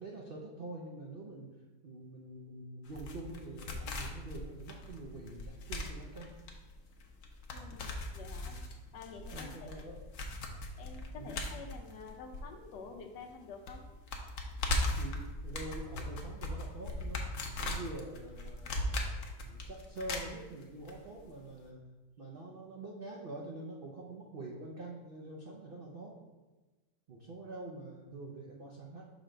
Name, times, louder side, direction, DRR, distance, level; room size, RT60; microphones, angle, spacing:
voice 1, 0.0-1.5 1.8-6.3 9.3-10.0 11.1-11.4 15.0-17.3 17.6-19.1 19.4-21.8 22.2-26.2 27.1-29.1, right 2 dB, 50° right, -2 dB, 0.6 m, -45 dB
sound 1, 2.9-13.0 13.2-13.3 13.7-20.9 21.2-21.3, left 1 dB, 60° left, 1.0 m, -38 dB
voice 2, 7.5-8.6 8.9-9.9 10.8-13.9, left 5 dB, 85° left, 2 dB, 1.3 m, -49 dB
6.3 x 3.3 x 5.0 m, 1.2 s
omnidirectional pair, 1.7 m